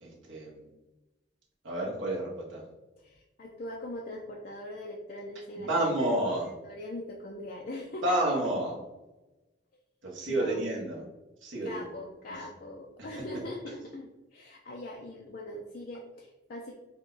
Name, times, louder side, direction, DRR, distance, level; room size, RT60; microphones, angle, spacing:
voice 1, 0.0-0.6 1.6-2.6 5.6-6.5 8.0-8.7 10.0-11.0 11.4-11.8 12.3-12.4 13.0-13.1, right 1 dB, 75° right, -5 dB, 1.2 m, -30 dB
voice 2, 3.0-6.2 6.4-8.2 10.3-10.7 11.6-16.7, left 1 dB, 50° left, 0 dB, 0.4 m, -41 dB
4.5 x 2.2 x 3.9 m, 1.1 s
head